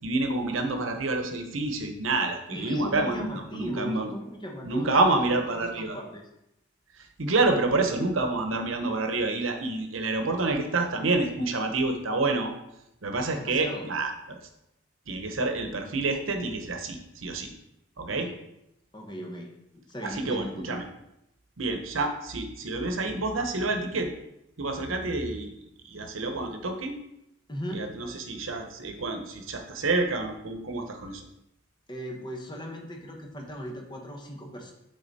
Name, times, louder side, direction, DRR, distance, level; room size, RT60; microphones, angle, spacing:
voice 1, 0.0-4.1 4.6-6.0 7.2-12.5 13.0-14.4 15.1-17.5 18.0-18.3 20.0-20.8 21.6-24.1 24.6-25.6 25.8-26.9 27.7-31.3, right 3 dB, 90° right, 5 dB, 0.9 m, -28 dB
voice 2, 2.5-5.2 5.5-6.3 13.3-13.9 18.1-18.4 18.9-20.8 27.5-27.8 31.9-34.7, equal, 20° left, 1 dB, 1.1 m, -38 dB
8.5 x 3.9 x 4.1 m, 0.85 s
head